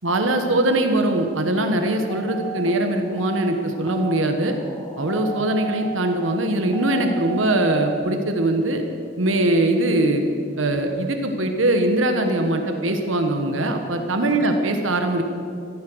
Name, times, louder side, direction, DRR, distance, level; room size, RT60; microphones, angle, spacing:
voice 1, 0.0-4.5 5.0-8.8 9.2-10.2 10.6-15.2, right 1 dB, 80° right, 5 dB, 1.4 m, -21 dB
sound 1, 2.1-8.0, right 6 dB, 25° left, 1.9 m, -35 dB
15.0 x 14.0 x 6.3 m, 2.4 s
head